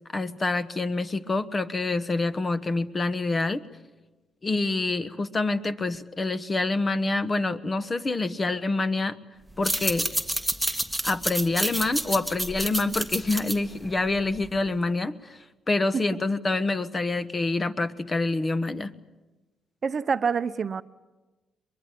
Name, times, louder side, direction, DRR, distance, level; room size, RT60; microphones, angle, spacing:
voice 1, 0.1-3.6 4.4-9.2 9.6-10.1 11.0-15.4 15.7-18.9, left 3 dB, 30° left, 12 dB, 1.2 m, -26 dB
sound 1, 9.5-14.7, right 1 dB, ahead, 1.4 m, -29 dB
voice 2, 19.8-20.8, right 6 dB, 45° right, 12 dB, 0.8 m, -26 dB
23.0 x 22.0 x 8.6 m, 1.1 s
cardioid pair, 90°, 0 cm